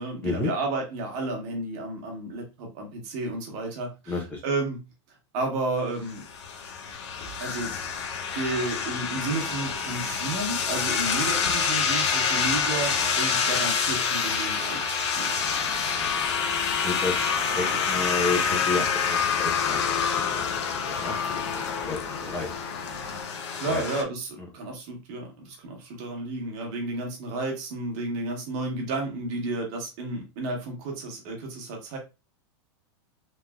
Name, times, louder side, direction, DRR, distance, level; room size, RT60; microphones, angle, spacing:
voice 1, 0.0-4.8 5.3-6.2 7.4-8.0 8.3-15.4 23.5-32.0, right 2 dB, 40° right, 1 dB, 1.1 m, -32 dB
voice 2, 4.1-4.4 16.2-16.3 16.8-19.8 20.1-20.5 20.9-21.6 21.9-22.5 23.7-23.8 24.4-24.5, left 3 dB, 10° left, 0 dB, 0.4 m, -31 dB
sound 1, 6.1-24.0, left 6 dB, 85° left, 0.6 m, -27 dB
sound 2, 15.3-23.2, left 2 dB, 45° left, 1.2 m, -42 dB
3.1 x 2.6 x 2.2 m, 0.26 s
supercardioid pair, 165°, 14 cm